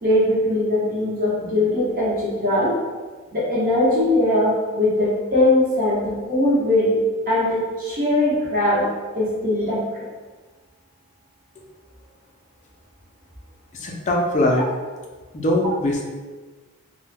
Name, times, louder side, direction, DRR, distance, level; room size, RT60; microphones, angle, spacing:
voice 1, 0.0-2.7 3.3-6.9 7.3-8.9 9.1-9.8, left 1 dB, 40° right, -9 dB, 0.9 m, -20 dB
voice 2, 13.7-14.6 15.3-16.0, left 1 dB, 35° left, 0 dB, 0.4 m, -21 dB
2.2 x 2.1 x 3.2 m, 1.4 s
head